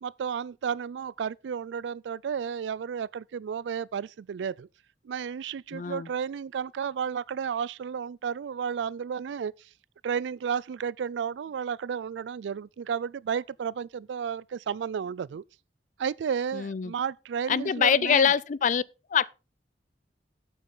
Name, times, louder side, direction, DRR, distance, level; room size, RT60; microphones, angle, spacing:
voice 1, 0.0-4.7 5.0-9.5 10.0-15.4 16.0-18.3, right 7 dB, 85° right, 0.3 m, -32 dB
voice 2, 5.7-6.1 16.5-16.9 17.5-18.8 19.1-19.3, left 7 dB, 45° left, 0.4 m, -24 dB
8.4 x 8.2 x 3.8 m
head